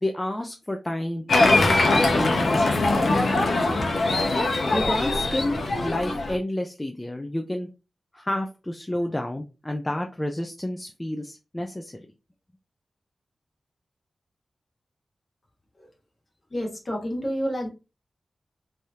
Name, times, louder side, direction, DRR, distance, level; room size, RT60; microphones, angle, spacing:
voice 1, 0.0-3.4 4.7-5.6 5.8-7.7 8.1-12.1, left 1 dB, 15° left, 4 dB, 0.4 m, -30 dB
Applause, 1.3-6.4, left 2 dB, 70° left, 0.8 m, -22 dB
voice 2, 16.5-17.7, equal, 35° left, 0 dB, 1.3 m, -29 dB
3.3 x 2.8 x 3.5 m, 0.29 s
wide cardioid pair, 125°, 0 cm